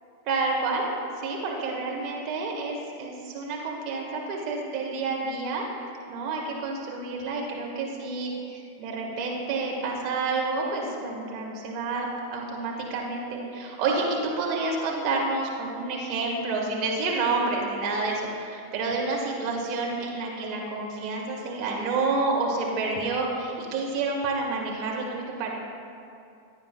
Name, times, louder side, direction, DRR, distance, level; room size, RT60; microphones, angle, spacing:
voice 1, 0.2-0.8 1.2-5.6 6.1-25.5, right 3 dB, 40° right, -2 dB, 1.7 m, -29 dB
15.0 x 9.4 x 2.4 m, 2.5 s
figure-of-eight pair, 90°, 0 cm